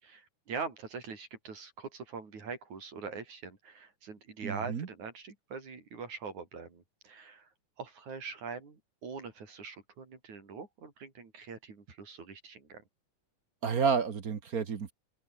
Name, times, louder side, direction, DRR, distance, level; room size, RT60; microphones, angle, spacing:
voice 1, 0.0-7.5 7.8-12.8, right 5 dB, 75° right, 6.1 m, -43 dB
voice 2, 4.4-4.9 13.6-14.9, right 6 dB, 45° right, 1.2 m, -30 dB
open air
omnidirectional pair, 3.4 m